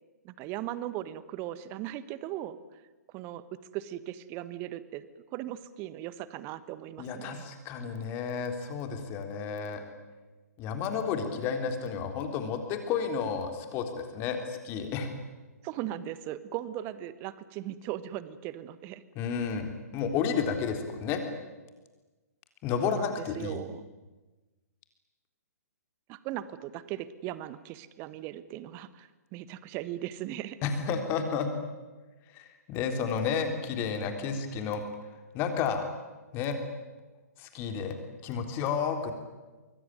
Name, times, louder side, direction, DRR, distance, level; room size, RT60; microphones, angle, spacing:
voice 1, 0.2-2.8 3.1-3.4 3.7-5.1 5.3-7.5 15.6-19.0 22.8-23.8 26.1-30.6, right 13 dB, 25° right, 15 dB, 1.4 m, -38 dB
voice 2, 7.0-9.8 10.6-15.1 19.2-21.2 22.6-23.6 30.6-31.5 32.3-34.8 35.3-35.9 36.3-36.6 37.4-38.0 38.2-39.1, left 6 dB, 25° left, 6 dB, 3.8 m, -31 dB
24.0 x 24.0 x 9.5 m, 1.2 s
figure-of-eight pair, 125°, 9 cm